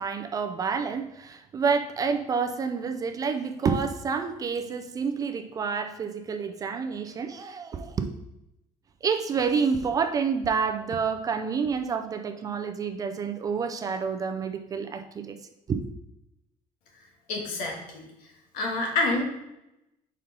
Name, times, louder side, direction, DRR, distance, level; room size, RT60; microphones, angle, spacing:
voice 1, 0.0-8.1 9.0-15.4 15.7-15.9, right 5 dB, 25° right, 6 dB, 0.4 m, -28 dB
voice 2, 17.3-18.0 18.5-19.3, left 2 dB, 80° left, 1 dB, 1.5 m, -27 dB
5.2 x 4.3 x 5.2 m, 0.88 s
cardioid pair, 170°, 14 cm